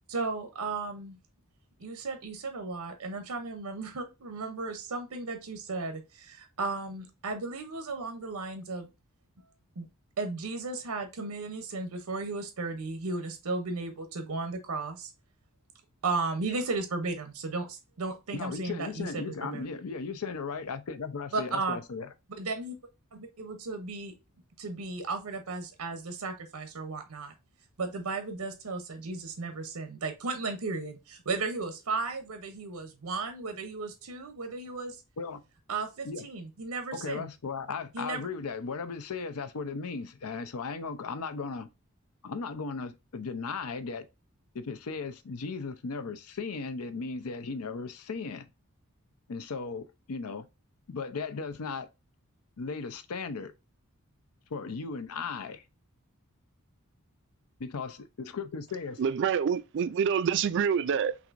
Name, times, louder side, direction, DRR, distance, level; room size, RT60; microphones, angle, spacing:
voice 1, 0.1-1.2 1.8-8.9 9.8-9.9 10.2-15.1 16.0-19.7 21.3-21.8 22.4-22.8 23.1-24.1 24.6-27.3 27.8-35.0 35.7-37.3 37.9-38.3, right 3 dB, 90° right, 0.7 m, -35 dB
voice 2, 18.3-22.1 35.2-35.4 36.0-36.3 36.9-41.7 42.2-44.1 44.5-48.5 49.3-50.5 50.9-51.9 52.6-53.5 54.5-55.6 57.6-59.0, left 4 dB, 80° left, 0.6 m, -36 dB
voice 3, 59.0-61.2, right 7 dB, 55° right, 0.3 m, -27 dB
5.9 x 2.6 x 2.5 m
head